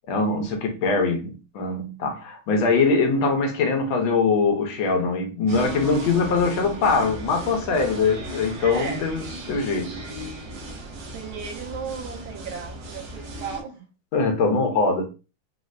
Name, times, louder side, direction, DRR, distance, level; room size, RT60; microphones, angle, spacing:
voice 1, 0.1-9.9 14.1-15.1, left 4 dB, 75° left, 1.5 m, -22 dB
sound 1, 5.5-13.6, right 1 dB, 70° right, 1.3 m, -37 dB
voice 2, 8.6-9.1 11.1-13.9, right 6 dB, 90° right, 1.6 m, -35 dB
4.2 x 2.1 x 2.5 m
omnidirectional pair, 2.3 m